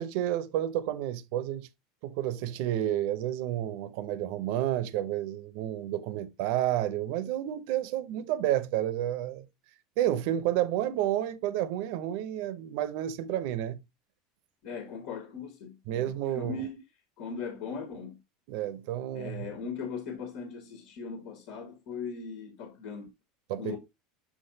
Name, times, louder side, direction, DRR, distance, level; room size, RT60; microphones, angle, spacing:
voice 1, 0.0-1.7 2.0-9.5 10.0-13.8 15.9-16.5 18.5-19.6 23.5-23.8, right 12 dB, 65° right, 0.8 m, -30 dB
voice 2, 14.6-16.8 17.2-18.2 19.1-23.1 23.6-23.8, left 5 dB, 60° left, 1.6 m, -39 dB
6.0 x 5.9 x 2.8 m
supercardioid pair, 135°, 0 cm